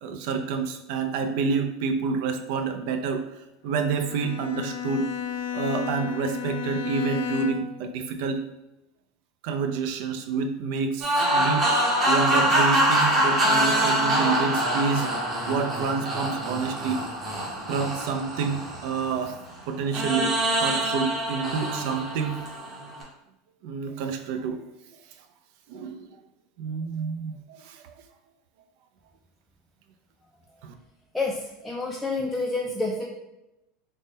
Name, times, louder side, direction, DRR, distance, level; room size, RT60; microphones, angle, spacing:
voice 1, 0.0-3.3 3.6-5.1 5.5-8.4 9.4-11.7 12.1-15.1 15.4-17.0 17.7-19.3 19.7-22.5 23.6-24.6 25.7-26.1 26.6-27.9 30.6-30.7, right 5 dB, 65° right, 6 dB, 0.4 m, -28 dB
Bowed string instrument, 3.8-7.9, left 9 dB, 85° left, 0.3 m, -33 dB
sound 1, 11.0-19.3 19.9-23.0, right 1 dB, 25° right, 0.9 m, -25 dB
voice 2, 31.1-33.1, left 3 dB, 5° left, -2 dB, 0.3 m, -28 dB
3.5 x 2.1 x 3.9 m, 0.91 s
supercardioid pair, 145°, 0 cm